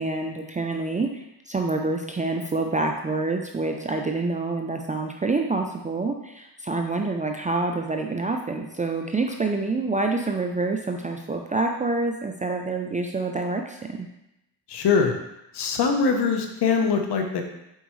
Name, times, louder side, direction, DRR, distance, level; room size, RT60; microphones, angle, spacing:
voice 1, 0.0-14.1, right 3 dB, 20° right, 3 dB, 0.5 m, -27 dB
voice 2, 14.7-15.1 15.5-17.4, left 5 dB, 65° left, 4 dB, 1.1 m, -22 dB
7.9 x 4.5 x 3.2 m, 0.88 s
cardioid pair, 85°, 42 cm